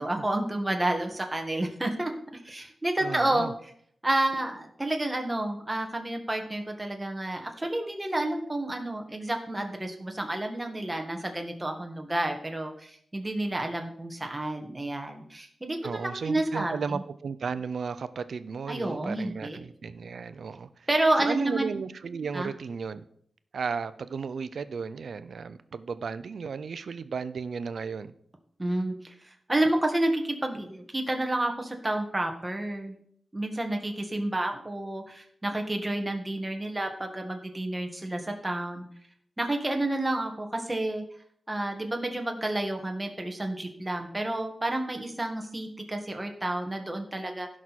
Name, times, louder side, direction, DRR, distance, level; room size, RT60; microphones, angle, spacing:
voice 1, 0.0-3.5 4.0-17.0 18.7-19.6 20.9-21.7 22.3-22.5 28.6-33.0 33.3-38.8 39.4-41.0 41.5-47.5, right 1 dB, 15° right, 3 dB, 1.6 m, -30 dB
voice 2, 3.0-3.5 15.8-20.9 21.2-23.0 23.5-28.1, right 5 dB, 70° right, 13 dB, 0.6 m, -34 dB
16.0 x 6.2 x 4.2 m, 0.65 s
wide cardioid pair, 145°, 0 cm